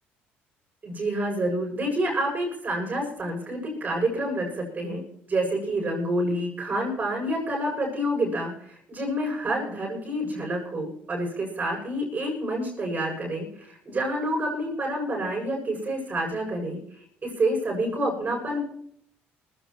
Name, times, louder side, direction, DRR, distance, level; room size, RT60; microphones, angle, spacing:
voice 1, 0.8-16.8 17.2-18.6, right 1 dB, 35° right, -1 dB, 7.5 m, -28 dB
21.0 x 15.5 x 3.1 m, 0.65 s
supercardioid pair, 90°, 5 cm